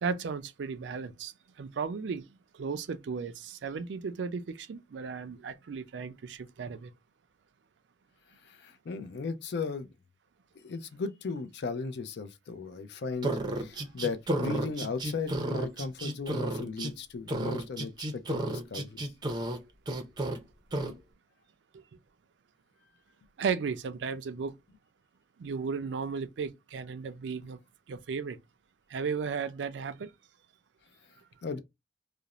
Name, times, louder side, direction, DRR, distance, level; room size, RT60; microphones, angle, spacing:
voice 1, 0.0-6.9 23.4-24.5 25.4-27.6 27.9-28.4 28.9-30.1, right 5 dB, 85° right, 0.4 m, -35 dB
voice 2, 8.4-9.9 10.6-13.3 13.6-19.0 31.4-31.6, left 4 dB, 70° left, 0.4 m, -36 dB
sound 1, 13.2-16.9 17.3-19.6 19.9-20.4 20.7-20.9, right 1 dB, 25° right, 0.5 m, -32 dB
2.4 x 2.0 x 2.9 m
head